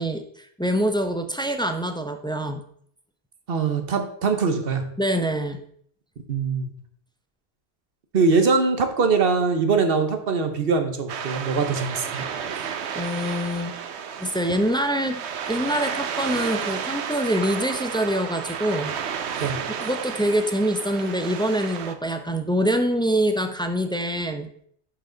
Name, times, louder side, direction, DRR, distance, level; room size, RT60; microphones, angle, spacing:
voice 1, 0.0-2.6 5.0-5.6 12.9-13.7 14.2-18.9 19.8-24.5, equal, 5° left, 7 dB, 0.5 m, -25 dB
voice 2, 3.5-4.8 6.3-6.7 8.1-12.2 19.4-19.6, right 4 dB, 60° right, 7 dB, 1.2 m, -22 dB
sound 1, 11.1-21.9, right 7 dB, 90° right, 1.0 m, -32 dB
11.0 x 4.8 x 3.9 m, 0.64 s
omnidirectional pair, 1.1 m